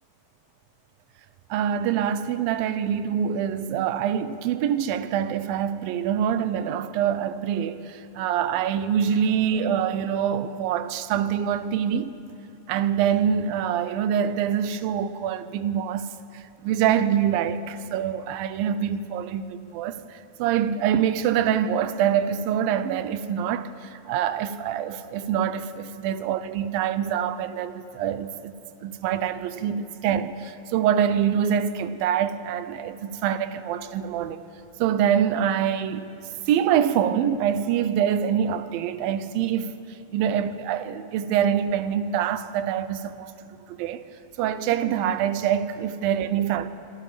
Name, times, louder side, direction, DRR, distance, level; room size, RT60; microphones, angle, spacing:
voice 1, 1.5-12.1 12.7-34.4 34.8-36.1 36.5-39.7 40.1-44.0 44.4-46.7, right 9 dB, 90° right, 2.6 m, -25 dB
25.5 x 25.0 x 5.0 m
omnidirectional pair, 4.0 m